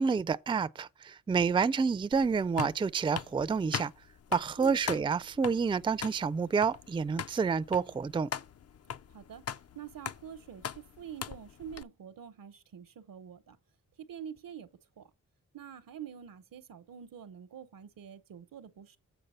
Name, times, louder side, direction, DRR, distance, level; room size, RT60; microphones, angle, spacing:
voice 1, 0.0-3.9 4.3-8.3, right 5 dB, 15° right, 0.3 m, -29 dB
sound 1, 2.1-11.8, left 8 dB, 50° left, 0.4 m, -41 dB
voice 2, 9.1-9.4 9.7-13.6 14.0-14.7 15.0-15.1 15.5-19.0, right 8 dB, 85° right, 0.8 m, -46 dB
7.9 x 4.7 x 5.5 m
cardioid pair, 60°, 33 cm